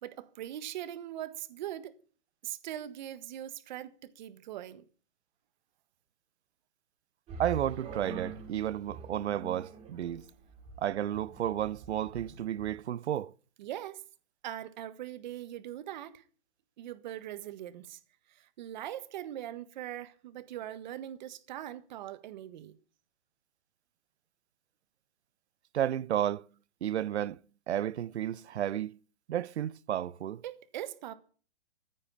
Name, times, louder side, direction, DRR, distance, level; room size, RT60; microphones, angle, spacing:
voice 1, 0.0-2.0 2.4-4.8 13.6-14.0 14.4-16.2 16.8-18.0 18.3-22.7 30.4-31.1, right 12 dB, 40° right, 1.6 m, -41 dB
sound 1, 7.3-12.8, right 4 dB, 20° right, 3.8 m, -45 dB
voice 2, 7.4-10.2 10.8-13.3 25.7-26.4 26.8-27.4 27.7-28.9 29.3-30.4, right 11 dB, 70° right, 0.7 m, -32 dB
15.0 x 9.7 x 8.5 m
hypercardioid pair, 160°, 35 cm